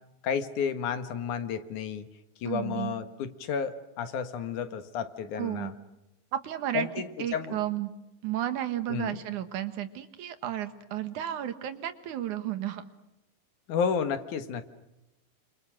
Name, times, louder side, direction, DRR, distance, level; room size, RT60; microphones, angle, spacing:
voice 1, 0.2-2.1 2.4-5.7 6.7-7.0 7.3-7.6 8.9-9.2 13.7-14.7, left 6 dB, 70° left, 9 dB, 2.9 m, -31 dB
voice 2, 2.5-3.0 5.4-5.7 6.3-6.9 7.2-7.9 8.2-12.9, right 12 dB, 70° right, 11 dB, 2.7 m, -33 dB
29.0 x 27.5 x 6.4 m, 0.96 s
omnidirectional pair, 3.7 m